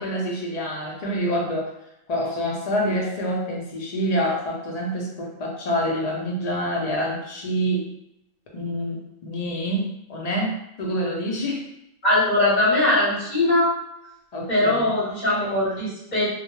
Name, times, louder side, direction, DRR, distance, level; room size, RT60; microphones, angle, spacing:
voice 1, 0.0-1.7 2.1-7.9 8.5-11.7 14.3-14.9, equal, 55° left, -2 dB, 0.4 m, -27 dB
voice 2, 12.0-13.7 14.5-16.3, left 1 dB, 40° left, -7 dB, 0.9 m, -21 dB
2.2 x 2.1 x 3.0 m, 0.84 s
omnidirectional pair, 1.3 m